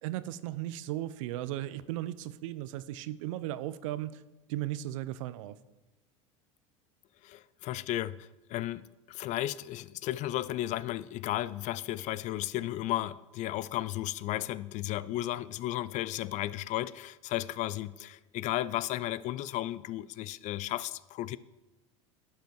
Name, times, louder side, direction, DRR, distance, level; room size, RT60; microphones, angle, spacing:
voice 1, 0.0-4.2 4.5-5.6, right 14 dB, 70° right, 0.5 m, -36 dB
voice 2, 7.2-21.4, left 14 dB, 45° left, 0.4 m, -34 dB
11.5 x 5.6 x 4.5 m
hypercardioid pair, 85°, 17 cm